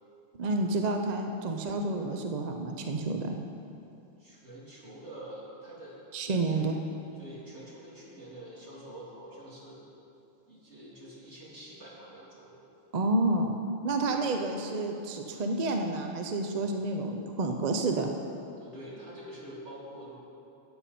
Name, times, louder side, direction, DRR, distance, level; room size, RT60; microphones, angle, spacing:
voice 1, 0.3-3.3 6.1-6.8 12.9-13.6 13.8-18.1, right 2 dB, 45° right, 4 dB, 0.6 m, -29 dB
voice 2, 4.2-6.0 6.5-6.7 7.1-9.8 10.5-12.6 14.1-14.3 18.6-20.2, right 1 dB, 60° right, -6 dB, 2.9 m, -46 dB
14.5 x 8.7 x 4.2 m, 2.8 s
omnidirectional pair, 1.3 m